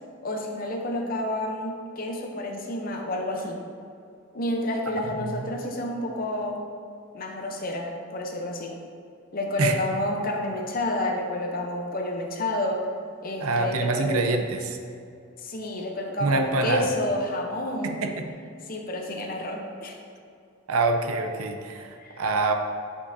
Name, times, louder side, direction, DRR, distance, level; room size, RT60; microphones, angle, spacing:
voice 1, 0.2-3.6 4.3-6.7 7.1-8.8 9.3-12.9 13.2-14.2 15.4-18.1 18.7-20.0 22.0-22.2, left 1 dB, 40° left, 2 dB, 0.7 m, -29 dB
voice 2, 13.4-14.8 16.2-16.9 17.8-18.3 20.7-22.5, right 3 dB, 90° right, 5 dB, 0.6 m, -25 dB
8.4 x 5.5 x 2.7 m, 2.5 s
head